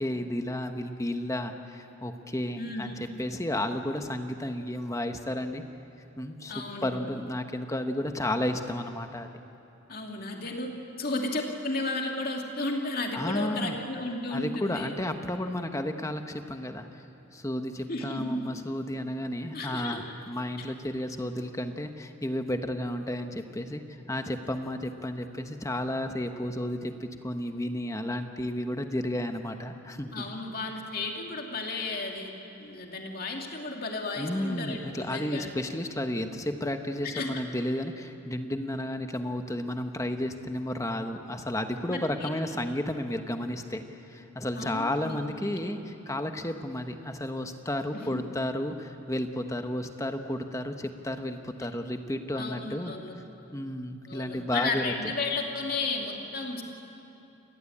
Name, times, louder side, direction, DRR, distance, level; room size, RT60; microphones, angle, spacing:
voice 1, 0.0-5.6 6.2-9.3 13.1-13.8 14.3-17.0 17.3-23.8 24.1-30.2 34.2-52.9 53.5-54.9, left 1 dB, 15° left, 6 dB, 1.2 m, -32 dB
voice 2, 2.6-3.2 6.5-7.0 9.9-10.7 11.0-14.9 17.9-18.4 19.5-20.0 20.6-20.7 30.1-35.5 37.1-37.3 41.9-42.3 44.6-45.5 47.9-48.2 52.3-53.1 54.1-56.6, left 2 dB, 45° left, 1 dB, 2.6 m, -33 dB
29.0 x 20.0 x 8.7 m, 2.8 s
head